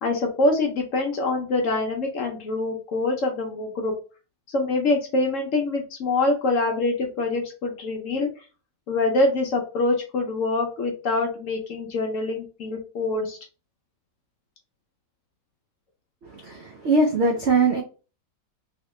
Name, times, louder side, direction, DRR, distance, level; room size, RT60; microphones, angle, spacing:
voice 1, 0.0-3.9 4.5-8.3 8.9-13.4, left 2 dB, 60° left, 2 dB, 0.8 m, -25 dB
voice 2, 16.3-17.8, right 3 dB, 85° right, 2 dB, 0.5 m, -21 dB
2.9 x 2.9 x 3.1 m, 0.34 s
omnidirectional pair, 1.9 m